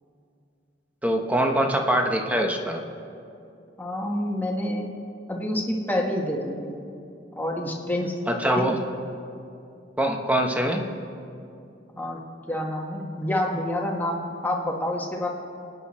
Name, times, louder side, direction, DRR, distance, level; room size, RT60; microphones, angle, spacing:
voice 1, 1.0-2.8 8.3-8.8 10.0-10.8, right 1 dB, 10° right, 3 dB, 1.2 m, -23 dB
voice 2, 3.8-5.0 5.3-6.7 7.4-8.1 12.0-12.2 12.5-15.3, left 1 dB, 10° left, -1 dB, 1.7 m, -28 dB
28.5 x 9.6 x 4.3 m, 2.6 s
head